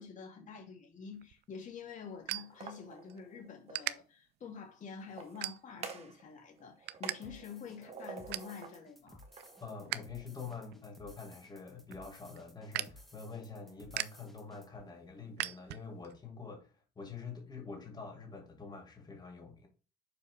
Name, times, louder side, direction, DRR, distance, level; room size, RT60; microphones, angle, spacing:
voice 1, 0.0-9.2, left 5 dB, 50° left, 2.9 m, -48 dB
sound 1, 1.1-3.2 3.7-3.9 4.5-4.7 5.4-6.0 6.4-7.2 7.5-7.6 7.9-8.6 9.0-10.1 10.4-16.1, right 15 dB, 75° right, 0.5 m, -41 dB
sound 2, 2.4-3.9 5.0-6.2 6.5-8.8 9.2-10.6, right 5 dB, 40° right, 1.3 m, -49 dB
sound 3, 7.2-14.7, left 1 dB, ahead, 1.4 m, -57 dB
voice 2, 9.6-19.7, left 5 dB, 25° left, 2.5 m, -46 dB
6.7 x 4.8 x 3.6 m
cardioid pair, 110°, 17 cm